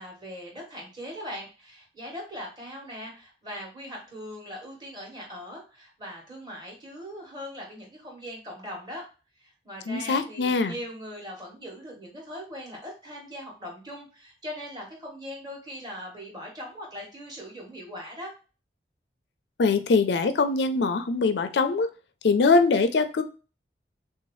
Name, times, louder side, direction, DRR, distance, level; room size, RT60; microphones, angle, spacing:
voice 1, 0.0-9.0 9.4-18.3, equal, 25° right, -1 dB, 1.2 m, -40 dB
voice 2, 9.9-10.7 19.6-21.9 22.2-23.2, left 4 dB, 75° left, 10 dB, 0.4 m, -22 dB
3.4 x 2.7 x 3.0 m, 0.33 s
head